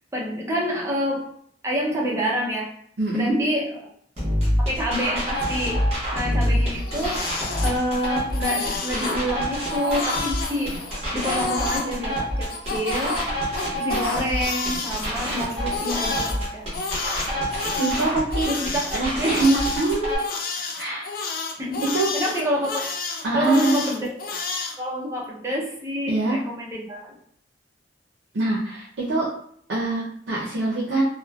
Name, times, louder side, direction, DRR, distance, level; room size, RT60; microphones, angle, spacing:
voice 1, 0.1-1.3 1.6-2.7 3.1-3.8 4.6-7.3 7.6-10.9 11.1-13.2 13.7-16.7 18.4-18.9 19.2-19.4 21.6-21.8 22.1-22.8 23.3-24.1 24.8-26.2 26.5-27.2, equal, 15° right, -3 dB, 0.5 m, -27 dB
voice 2, 3.0-3.4 17.8-18.5 18.9-20.3 20.8-21.1 21.8-22.1 23.2-23.9 26.1-26.4 28.3-29.3 29.7-31.0, right 2 dB, 80° right, -5 dB, 0.6 m, -23 dB
sound 1, 4.2-20.2, equal, 35° right, 1.0 m, -27 dB
Crying sobbing, 6.6-8.1 8.3-9.2 9.7-11.9 12.5-16.3 16.7-24.8, left 4 dB, 50° left, 0.4 m, -30 dB
3.0 x 2.0 x 2.2 m, 0.64 s
head